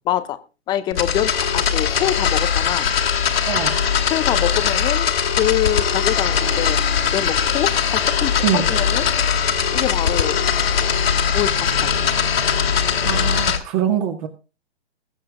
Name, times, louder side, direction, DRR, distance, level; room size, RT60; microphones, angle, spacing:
voice 1, 0.1-0.4 0.7-2.9 4.1-6.8 7.1-9.1 9.7-10.4 11.3-12.1, left 12 dB, 15° left, 14 dB, 0.6 m, -25 dB
sound 1, 0.9-13.6, left 7 dB, 65° left, 2.2 m, -20 dB
voice 2, 3.5-3.8 8.4-8.6 13.0-14.3, right 10 dB, 35° right, 5 dB, 1.8 m, -23 dB
sound 2, 5.7-13.5, equal, 85° right, 2.6 m, -34 dB
21.0 x 7.5 x 3.6 m, 0.32 s
figure-of-eight pair, 125°, 33 cm